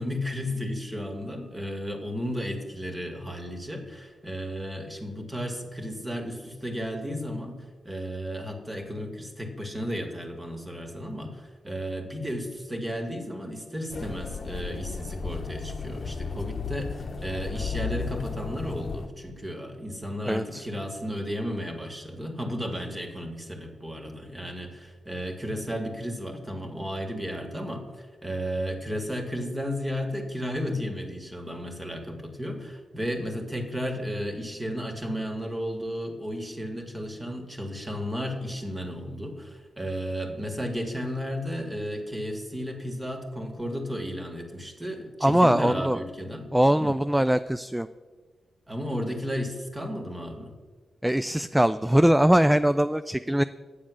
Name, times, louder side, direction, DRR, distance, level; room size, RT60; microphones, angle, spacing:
voice 1, 0.0-7.5 7.8-46.5 46.8-46.9 48.7-50.5, equal, 25° right, 4 dB, 2.1 m, -33 dB
sound 1, 13.9-19.1, left 5 dB, 55° left, 0.8 m, -34 dB
voice 2, 20.2-20.7 45.2-46.0 46.5-47.9 51.0-53.4, right 1 dB, 10° right, 12 dB, 0.3 m, -22 dB
8.7 x 7.2 x 6.4 m, 1.4 s
supercardioid pair, 40°, 0 cm